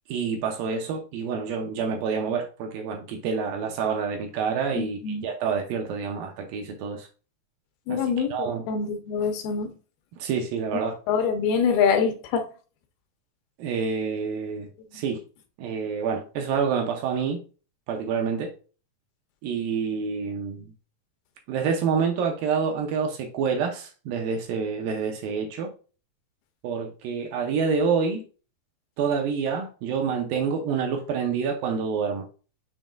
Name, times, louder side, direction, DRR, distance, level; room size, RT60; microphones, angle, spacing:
voice 1, 0.1-7.1 7.9-8.0 8.3-8.6 10.2-10.9 13.6-14.7 14.9-15.2 15.6-17.4 17.9-18.5 19.4-20.7 21.5-25.7 26.6-28.2 29.0-32.3, right 6 dB, 80° right, 2.2 m, -27 dB
voice 2, 4.8-5.3 7.9-9.7 10.7-12.5, left 6 dB, 85° left, 2.5 m, -25 dB
7.1 x 3.0 x 2.4 m
omnidirectional pair, 4.4 m